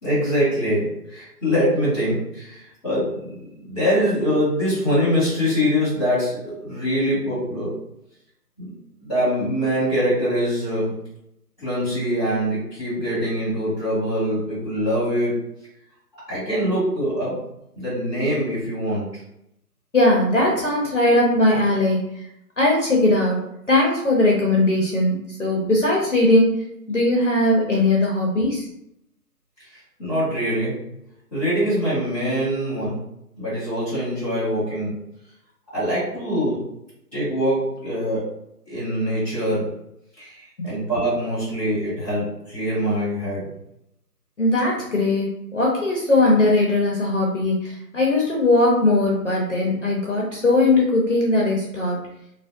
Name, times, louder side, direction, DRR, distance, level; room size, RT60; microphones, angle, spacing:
voice 1, 0.0-7.7 8.6-8.7 9.0-10.9 11.6-15.4 16.3-17.4 17.7-19.1 29.7-30.7 31.3-33.1 33.4-35.0 35.7-36.6 37.1-38.3 38.6-39.7 40.2-43.5, equal, ahead, -17 dB, 1.0 m, -23 dB
voice 2, 19.9-22.3 22.6-23.4 23.7-28.7 40.6-40.7 44.4-52.0, left 2 dB, 50° left, -2 dB, 0.5 m, -19 dB
2.5 x 2.1 x 2.3 m, 0.79 s
hypercardioid pair, 170°, 49 cm